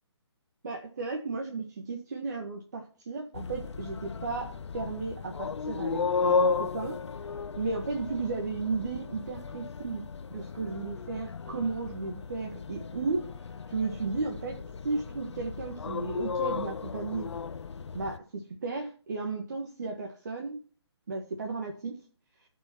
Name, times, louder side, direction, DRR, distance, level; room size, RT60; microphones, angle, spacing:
voice 1, 0.6-7.0 7.6-13.3 13.7-14.6 14.8-17.3 17.9-20.6 21.1-22.0, right 4 dB, 40° right, 1 dB, 1.8 m, -34 dB
sound 1, 3.3-18.2, left 5 dB, 75° left, 0.6 m, -34 dB
15.0 x 5.6 x 4.5 m, 0.39 s
hypercardioid pair, 175°, 15 cm